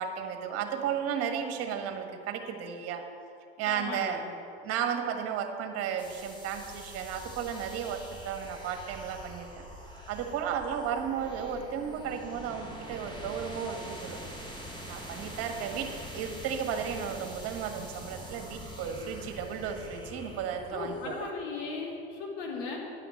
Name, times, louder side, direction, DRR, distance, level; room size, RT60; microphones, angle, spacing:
voice 1, 0.0-3.0 3.6-4.2 4.6-9.5 10.1-14.2 14.9-15.9 16.1-21.1, right 8 dB, 50° right, 5 dB, 1.5 m, -34 dB
voice 2, 3.6-4.2 20.7-22.8, left 4 dB, 60° left, -1 dB, 2.7 m, -37 dB
burning static, 6.0-21.3, equal, 15° left, 1.8 m, -45 dB
10.0 x 5.9 x 8.3 m, 2.6 s
hypercardioid pair, 95°, 30 cm